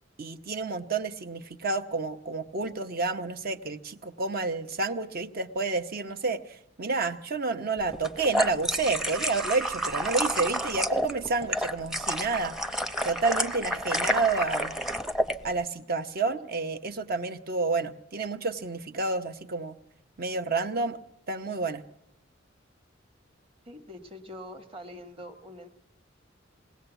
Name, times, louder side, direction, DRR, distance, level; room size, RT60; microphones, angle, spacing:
voice 1, 0.2-12.5 13.0-14.7 15.4-19.8 20.2-21.0 21.3-21.8, right 3 dB, 50° right, 8 dB, 0.9 m, -30 dB
sound 1, 7.9-15.4, equal, ahead, 0.7 m, -29 dB
voice 2, 23.6-25.7, left 1 dB, 30° right, 7 dB, 1.5 m, -44 dB
21.0 x 18.0 x 8.1 m, 0.80 s
head